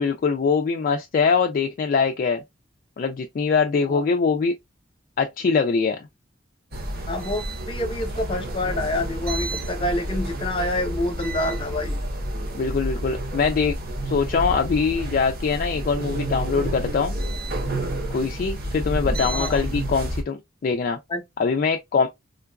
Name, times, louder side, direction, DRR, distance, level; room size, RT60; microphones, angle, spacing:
voice 1, 0.0-2.4 3.0-4.5 5.2-6.1 12.5-13.8 14.0-17.2 18.1-21.0 21.4-22.1, left 5 dB, 45° left, 0.3 m, -23 dB
sound 1, 6.7-20.2, right 1 dB, 50° right, 0.8 m, -29 dB
voice 2, 7.1-12.0 19.3-19.7 21.1-21.2, left 1 dB, 25° left, 0.8 m, -27 dB
3.7 x 2.3 x 2.3 m
head